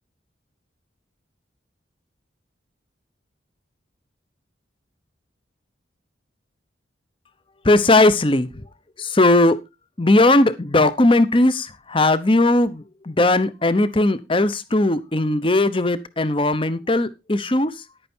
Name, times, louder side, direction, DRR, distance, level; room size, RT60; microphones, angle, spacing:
voice 1, 7.6-8.6 9.0-9.6 10.0-17.7, left 2 dB, 25° left, 15 dB, 0.9 m, -18 dB
11.0 x 9.0 x 4.5 m, 0.25 s
head